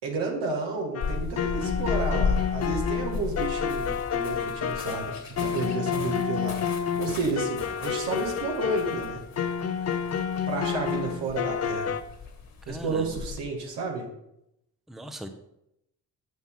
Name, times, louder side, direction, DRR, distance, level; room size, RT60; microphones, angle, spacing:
voice 1, 0.0-9.2 10.5-11.9 12.7-14.1, right 3 dB, 70° right, 0 dB, 2.1 m, -31 dB
sound 1, 0.9-12.0, left 7 dB, 35° left, 0.7 m, -29 dB
sound 2, 1.0-13.4, left 5 dB, 50° left, 2.0 m, -35 dB
voice 2, 12.7-13.1 14.9-15.3, equal, ahead, 7 dB, 0.9 m, -38 dB
7.6 x 7.0 x 3.8 m, 0.81 s
hypercardioid pair, 45°, 44 cm